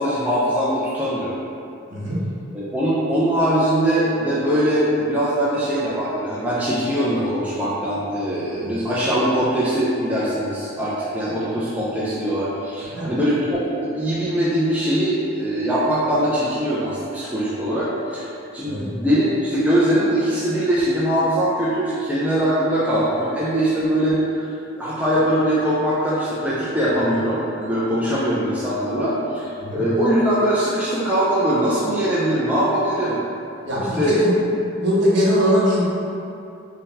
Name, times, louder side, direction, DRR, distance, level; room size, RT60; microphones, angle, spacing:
voice 1, 0.0-1.4 2.5-18.3 18.5-33.2 33.9-34.2, right 1 dB, 5° right, -9 dB, 0.3 m, -21 dB
voice 2, 33.6-34.3 34.7-35.8, equal, 60° right, -7 dB, 0.8 m, -20 dB
2.7 x 2.1 x 3.8 m, 2.6 s
head